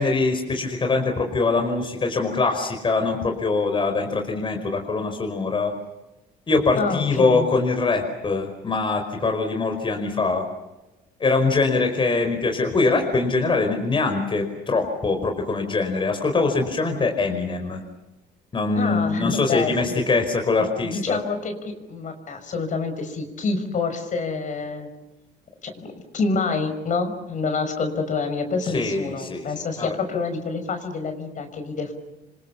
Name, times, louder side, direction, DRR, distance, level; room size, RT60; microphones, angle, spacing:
voice 1, 0.0-5.7 6.5-10.4 11.2-17.8 18.5-21.2 28.7-29.5 29.8-29.9, left 3 dB, 30° left, 4 dB, 5.0 m, -23 dB
voice 2, 6.8-7.5 18.8-20.0 20.8-24.9 25.6-31.9, left 4 dB, 50° left, 7 dB, 5.8 m, -27 dB
28.0 x 25.5 x 7.1 m, 1.0 s
cardioid pair, 110°, 17 cm